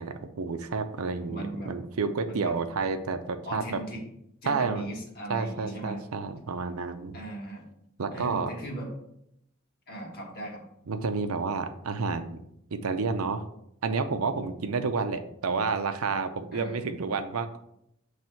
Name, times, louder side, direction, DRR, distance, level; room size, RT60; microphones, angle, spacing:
voice 1, 0.0-3.8 4.4-4.9 5.3-7.2 8.0-8.5 10.9-12.4 12.7-13.4 13.8-17.6, right 4 dB, 80° right, 9 dB, 0.6 m, -30 dB
voice 2, 1.3-1.7 2.3-2.5 3.4-4.0 4.4-6.0 7.1-7.6 8.1-8.9 9.9-10.6 16.5-16.7, right 1 dB, 45° left, 0 dB, 1.5 m, -38 dB
7.6 x 3.2 x 4.5 m, 0.76 s
head